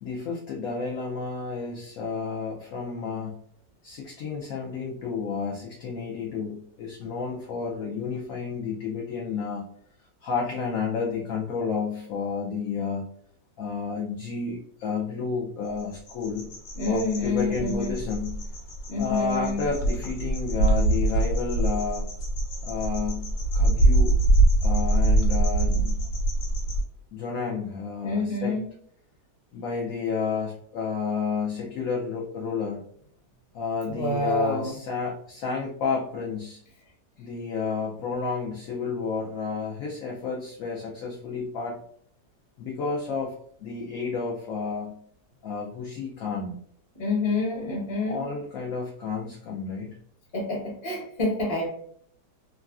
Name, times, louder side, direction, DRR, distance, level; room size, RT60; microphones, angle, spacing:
voice 1, 0.0-3.4 3.8-9.6 10.2-13.1 13.6-16.5 16.9-18.5 19.0-22.1 22.6-24.2 24.6-26.0 27.1-28.5 29.5-32.8 33.5-36.6 37.2-41.8 42.6-45.0 45.4-46.6 47.5-47.7 48.1-50.0, left 5 dB, 70° left, -2 dB, 0.8 m, -31 dB
sound 1, 15.8-26.8, right 2 dB, 90° left, 1.4 m, -24 dB
voice 2, 16.7-17.9 18.9-19.6 28.0-28.7 33.8-34.8 46.9-48.3 50.3-51.7, left 2 dB, 35° left, -3 dB, 1.4 m, -27 dB
3.1 x 2.5 x 2.3 m, 0.63 s
omnidirectional pair, 1.9 m